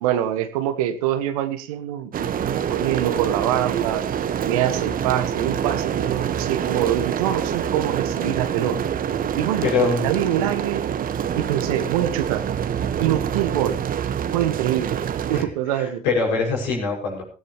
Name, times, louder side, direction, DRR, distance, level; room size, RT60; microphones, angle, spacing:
voice 1, 0.0-4.1 4.4-8.8 9.4-9.7 10.0-10.8 11.4-12.5 13.0-13.8 14.3-15.0 15.3-16.0, right 11 dB, 75° right, 11 dB, 1.4 m, -25 dB
sound 1, 2.1-15.4, right 8 dB, 50° right, 1.4 m, -26 dB
voice 2, 9.6-10.1 15.3-15.5 15.7-17.2, left 4 dB, 75° left, -1 dB, 6.3 m, -23 dB
17.0 x 16.5 x 3.1 m, 0.35 s
figure-of-eight pair, 45°, 18 cm